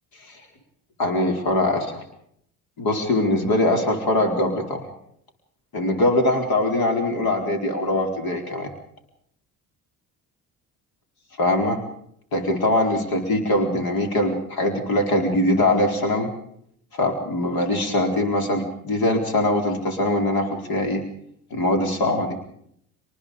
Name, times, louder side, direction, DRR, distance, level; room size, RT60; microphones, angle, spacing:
voice 1, 1.0-2.0 2.8-4.9 5.7-8.7 11.4-11.8 12.3-16.3 16.9-21.0 21.5-22.4, left 1 dB, 60° left, 3 dB, 4.5 m, -22 dB
27.5 x 20.0 x 5.2 m, 0.69 s
supercardioid pair, 75°, 40 cm